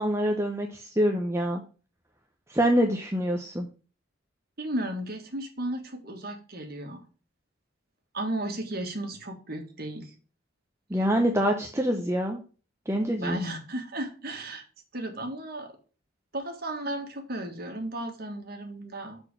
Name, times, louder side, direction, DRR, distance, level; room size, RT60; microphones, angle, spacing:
voice 1, 0.0-1.6 2.5-3.7 10.9-12.4 12.9-13.4, equal, 15° right, 3 dB, 0.7 m, -25 dB
voice 2, 4.6-7.0 8.1-10.1 13.2-14.6 14.9-15.7 16.3-19.2, right 1 dB, 50° right, 3 dB, 1.6 m, -34 dB
6.5 x 4.4 x 6.6 m, 0.38 s
head